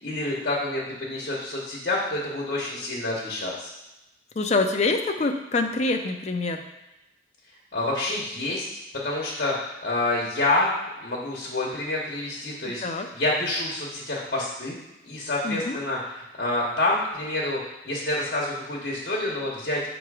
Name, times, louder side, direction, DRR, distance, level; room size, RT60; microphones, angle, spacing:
voice 1, 0.0-3.7 7.7-8.7 8.9-10.7 11.0-14.8 15.0-19.8, left 2 dB, 50° left, -4 dB, 1.1 m, -28 dB
voice 2, 4.4-6.6 12.8-13.1 15.4-15.8, left 3 dB, 35° left, 5 dB, 0.5 m, -25 dB
6.7 x 3.0 x 4.8 m, 0.97 s
head